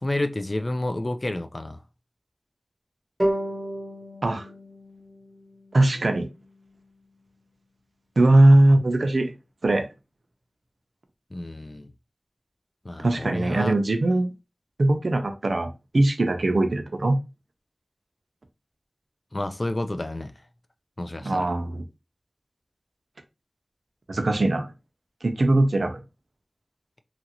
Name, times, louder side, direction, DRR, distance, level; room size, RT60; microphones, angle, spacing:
voice 1, 0.0-1.8 11.3-11.9 12.8-13.7 19.3-20.3 21.0-21.5, left 1 dB, 45° left, 0.4 m, -30 dB
sound 1, 3.2-6.5, right 1 dB, 15° right, 1.0 m, -32 dB
voice 2, 5.7-6.3 8.2-9.3 9.6-9.9 13.0-14.3 14.8-17.2 21.2-21.8 24.1-24.7 25.2-26.0, right 2 dB, 80° right, 0.5 m, -20 dB
2.8 x 2.5 x 2.8 m
wide cardioid pair, 55°, 0 cm